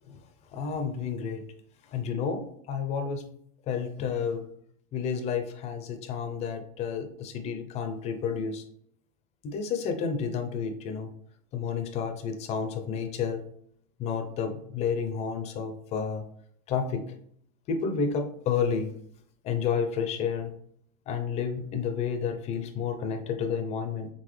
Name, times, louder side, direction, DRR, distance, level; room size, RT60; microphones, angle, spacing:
voice 1, 0.5-1.4 1.9-3.2 3.7-4.5 4.9-8.6 9.4-11.1 11.5-13.4 14.0-16.2 16.7-17.0 17.7-18.9 19.4-20.5 21.1-24.1, left 6 dB, 35° left, 6 dB, 0.6 m, -30 dB
3.9 x 3.6 x 3.2 m, 0.66 s
supercardioid pair, 155°, 20 cm